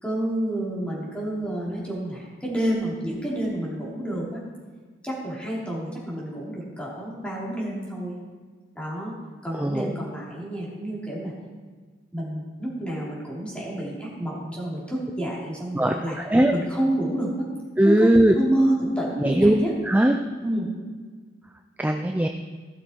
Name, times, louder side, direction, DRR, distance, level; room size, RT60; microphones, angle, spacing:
voice 1, 0.0-4.4 5.0-8.2 8.7-9.1 9.4-11.3 12.1-16.2 16.5-17.5 17.8-19.7 20.4-20.7, right 1 dB, 5° left, -5 dB, 3.0 m, -29 dB
voice 2, 15.7-16.5 17.8-18.3 19.2-19.5 19.9-20.2 21.8-22.3, right 1 dB, 10° right, 5 dB, 0.4 m, -19 dB
16.0 x 6.5 x 4.5 m, 1.5 s
head